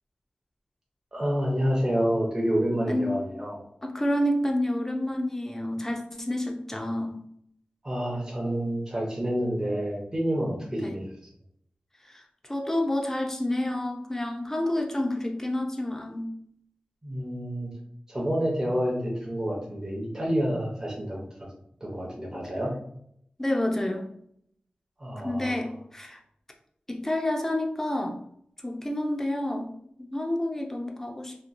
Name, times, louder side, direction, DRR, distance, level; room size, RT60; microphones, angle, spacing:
voice 1, 1.1-3.6 7.8-11.0 17.0-17.7 18.1-21.2 21.8-22.7 25.0-25.6, equal, 20° right, -4 dB, 0.7 m, -28 dB
voice 2, 2.9-3.2 3.8-7.2 10.8-11.0 12.1-12.2 12.5-16.3 23.4-24.1 25.2-26.2 26.9-28.2 28.6-29.7 30.0-31.5, left 1 dB, 15° left, 2 dB, 0.4 m, -29 dB
2.9 x 2.2 x 2.5 m, 0.68 s
wide cardioid pair, 80°, 3 cm